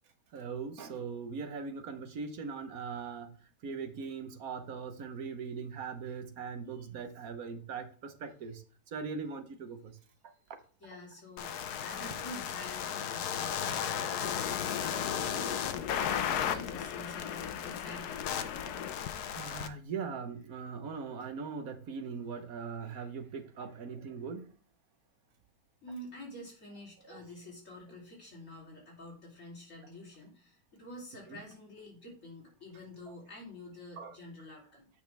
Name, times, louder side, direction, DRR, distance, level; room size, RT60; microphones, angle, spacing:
voice 1, 0.3-3.3 3.6-8.6 8.9-10.0 12.0-12.1 18.8-18.9 19.3-24.5 27.1-27.2 34.0-34.1, right 5 dB, 60° right, 8 dB, 1.4 m, -40 dB
voice 2, 10.8-15.7 16.1-18.7 25.8-34.9, left 1 dB, 50° left, -3 dB, 3.8 m, -48 dB
sound 1, 11.4-19.7, left 9 dB, 75° left, 1.2 m, -34 dB
8.5 x 5.7 x 3.4 m, 0.41 s
omnidirectional pair, 1.8 m